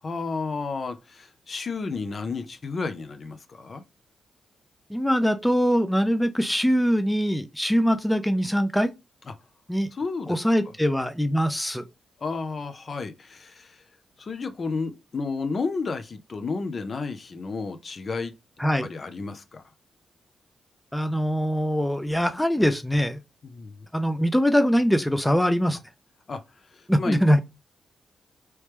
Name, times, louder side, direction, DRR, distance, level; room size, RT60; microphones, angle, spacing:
voice 1, 0.0-3.8 9.9-10.4 12.2-13.8 14.2-18.3 18.8-19.6 23.4-23.9 26.3-26.4 26.7-27.2, left 4 dB, 50° left, 0.6 m, -32 dB
voice 2, 4.9-8.9 9.7-9.9 10.3-11.8 18.6-18.9 20.9-23.2 23.9-25.8 26.9-27.4, equal, 5° left, 0.4 m, -22 dB
3.1 x 3.1 x 3.2 m
cardioid pair, 65°, 0 cm